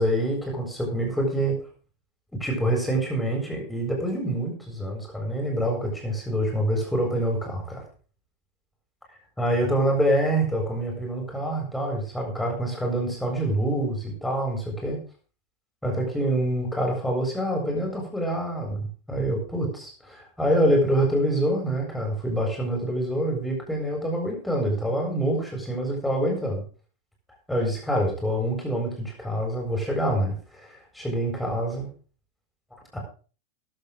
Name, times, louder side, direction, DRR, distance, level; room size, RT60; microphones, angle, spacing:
voice 1, 0.0-1.6 2.3-7.8 9.4-15.0 15.8-26.6 27.5-31.9 32.9-33.0, right 1 dB, 5° left, 0 dB, 7.6 m, -26 dB
14.5 x 12.0 x 4.0 m, 0.38 s
figure-of-eight pair, 90°, 0 cm